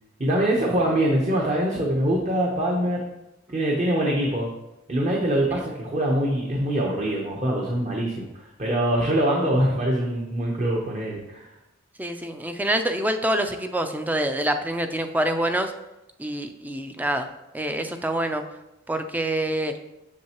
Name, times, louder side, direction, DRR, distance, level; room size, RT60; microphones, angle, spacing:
voice 1, 0.2-3.0 3.5-4.5 4.9-11.5, right 1 dB, 35° right, -2 dB, 0.9 m, -24 dB
voice 2, 12.0-15.7 16.2-17.3 17.5-18.4 18.9-19.7, right 1 dB, 10° right, 7 dB, 0.4 m, -26 dB
7.5 x 6.4 x 3.0 m, 0.92 s
head